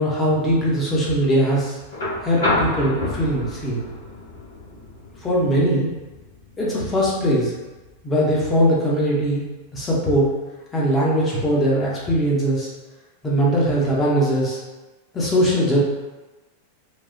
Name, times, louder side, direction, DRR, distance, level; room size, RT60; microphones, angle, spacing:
voice 1, 0.0-1.8 2.2-3.8 5.2-5.9 6.6-7.5 8.0-9.4 9.7-10.3 10.7-12.7 13.2-14.6 15.1-15.8, equal, 15° left, -5 dB, 0.9 m, -20 dB
sound 1, 1.9-10.0 11.4-11.5, left 2 dB, 65° left, 1.0 m, -31 dB
3.3 x 2.3 x 2.6 m, 1.2 s
figure-of-eight pair, 90°, 0 cm